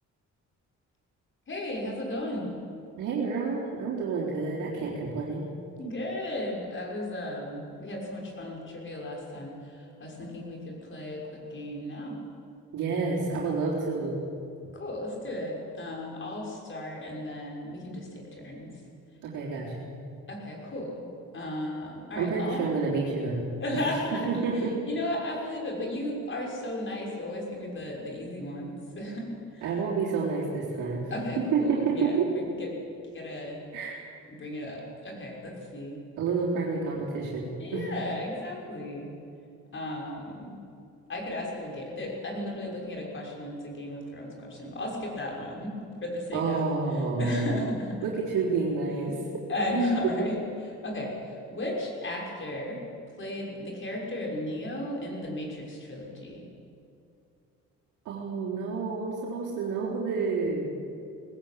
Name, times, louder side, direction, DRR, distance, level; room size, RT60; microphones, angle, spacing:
voice 1, 1.5-2.5 5.8-9.5 10.0-12.2 14.7-18.7 20.3-21.0 21.3-22.7 23.6-24.5 24.9-29.3 29.5-29.6 31.1-32.7 33.1-33.6 34.3-36.0 37.6-39.1 39.7-40.5 41.1-45.7 46.0-46.7 47.2-48.0 49.5-52.8 53.2-56.4, left 1 dB, 40° left, -1 dB, 6.2 m, -34 dB
voice 2, 3.0-5.5 12.7-14.2 19.2-19.9 22.1-23.5 23.7-23.8 24.1-24.7 29.6-31.0 31.4-32.3 33.7-34.0 36.2-37.8 46.3-47.6 48.0-49.2 58.1-60.6, right 4 dB, 85° right, -5 dB, 3.9 m, -29 dB
19.5 x 16.0 x 8.7 m, 2.5 s
cardioid pair, 90°, 30 cm